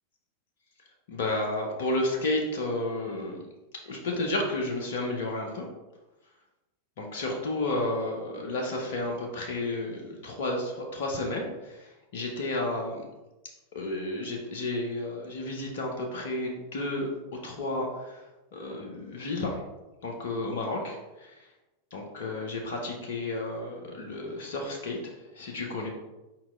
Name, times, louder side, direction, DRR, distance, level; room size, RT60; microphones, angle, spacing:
voice 1, 1.1-3.4 3.9-5.6 7.0-13.0 13.7-17.1 17.4-18.2 18.5-19.6 20.0-21.4 21.9-25.0 25.3-25.9, left 2 dB, 55° left, 1 dB, 0.8 m, -32 dB
4.6 x 4.4 x 2.5 m, 1.0 s
figure-of-eight pair, 90°, 0 cm